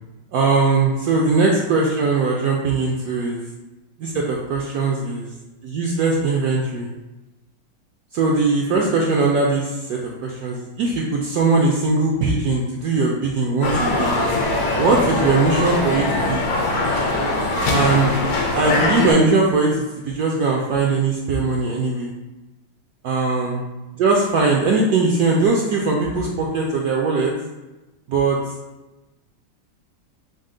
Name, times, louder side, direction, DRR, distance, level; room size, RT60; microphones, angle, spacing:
voice 1, 0.3-3.4 4.0-5.3 5.6-6.9 8.1-14.2 14.5-16.5 17.7-18.2 18.5-22.1 23.0-23.6 24.0-27.3 28.1-28.4, right 3 dB, 70° right, -2 dB, 0.9 m, -20 dB
sound 1, 13.6-19.1, left 2 dB, 65° left, 1.1 m, -21 dB
5.2 x 2.0 x 3.7 m, 1.1 s
omnidirectional pair, 2.0 m